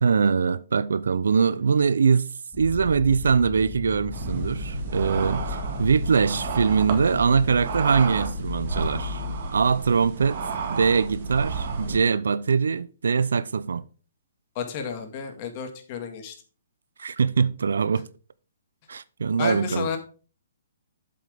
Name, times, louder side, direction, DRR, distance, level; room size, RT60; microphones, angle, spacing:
voice 1, 0.0-2.3 2.6-9.2 9.5-10.4 10.7-13.8 17.0-18.1 18.9-19.9, right 5 dB, 80° right, 0.5 m, -22 dB
sound 1, 2.5-9.4, left 6 dB, 15° left, 3.4 m, -36 dB
sound 2, 4.1-12.0, right 4 dB, 50° right, 2.0 m, -31 dB
voice 2, 14.6-16.3 19.4-20.0, left 6 dB, 40° left, 1.9 m, -31 dB
7.8 x 7.7 x 3.5 m
hypercardioid pair, 145°, 0 cm